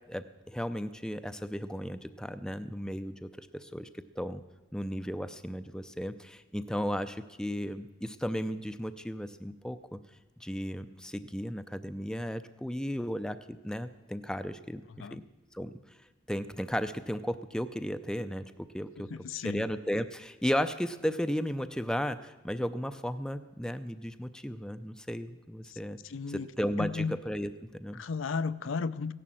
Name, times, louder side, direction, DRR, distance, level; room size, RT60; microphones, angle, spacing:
voice 1, 0.1-4.4 4.7-10.0 10.4-15.2 15.5-15.7 16.3-19.1 19.4-26.0 26.3-28.0, equal, 5° left, 11 dB, 0.5 m, -35 dB
voice 2, 19.1-19.7 25.7-25.8 26.0-26.5 26.8-27.1 27.9-29.1, left 5 dB, 75° left, 14 dB, 0.5 m, -34 dB
16.0 x 11.0 x 7.6 m, 1.2 s
head